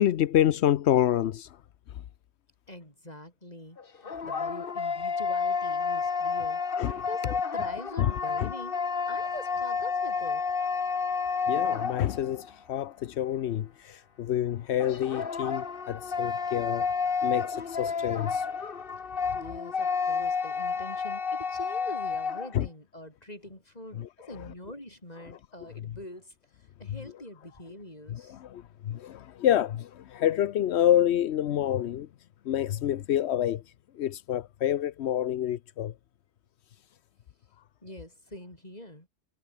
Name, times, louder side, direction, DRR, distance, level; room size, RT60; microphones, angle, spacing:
voice 1, 0.0-1.6 6.7-7.0 8.0-8.5 11.5-16.9 17.2-18.5 22.5-22.7 23.9-24.5 25.3-25.4 25.8-25.9 26.9-27.0 28.1-32.1 32.4-35.9, left 11 dB, 85° left, 1.0 m, -28 dB
voice 2, 2.7-8.8 9.1-10.4 19.3-26.3 26.8-28.4 37.8-39.1, left 1 dB, 40° left, 8.0 m, -44 dB
sound 1, 3.8-12.5 14.8-22.5, left 5 dB, 60° left, 1.5 m, -30 dB
omnidirectional pair, 1.1 m